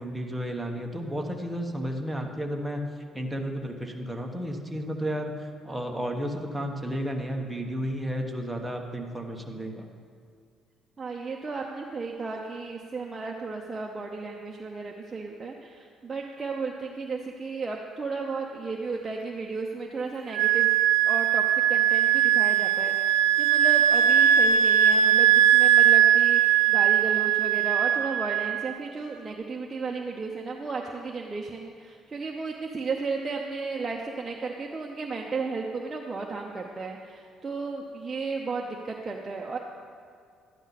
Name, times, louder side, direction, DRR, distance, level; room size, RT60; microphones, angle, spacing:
voice 1, 0.0-2.8 3.1-9.9, equal, 5° right, 1 dB, 1.2 m, -32 dB
voice 2, 11.0-20.7 21.1-21.4 21.7-39.6, right 4 dB, 25° right, 0 dB, 0.8 m, -34 dB
Wind instrument woodwind instrument, 20.3-28.6, right 10 dB, 90° right, 0.4 m, -20 dB
12.5 x 10.0 x 4.2 m, 2.3 s
cardioid pair, 100°, 0 cm